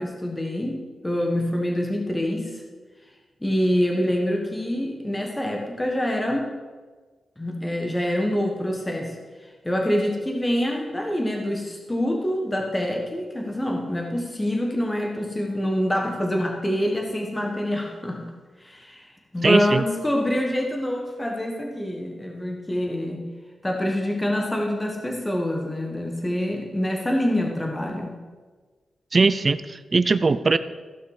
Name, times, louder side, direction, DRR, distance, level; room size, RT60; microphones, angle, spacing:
voice 1, 0.0-2.6 3.4-6.5 7.4-9.2 9.6-18.3 18.6-23.2 23.6-28.1, left 1 dB, 15° left, 1 dB, 1.5 m, -26 dB
voice 2, 19.4-19.8 29.1-30.6, right 4 dB, 40° right, 14 dB, 0.4 m, -20 dB
15.5 x 5.8 x 4.9 m, 1.4 s
cardioid pair, 90°, 0 cm